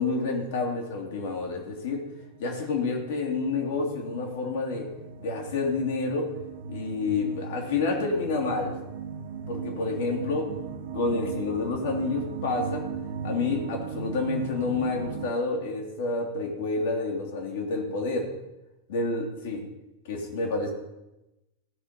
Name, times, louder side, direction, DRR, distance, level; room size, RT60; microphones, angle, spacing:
voice 1, 0.0-2.0 2.4-4.9 5.2-6.3 6.7-8.7 9.5-10.5 10.9-12.8 13.2-18.3 18.9-19.6 20.1-20.7, left 3 dB, 55° left, 1 dB, 2.6 m, -29 dB
sound 1, 1.5-15.3, right 5 dB, 55° right, 0.8 m, -38 dB
16.0 x 5.8 x 5.6 m, 0.97 s
figure-of-eight pair, 90°, 0 cm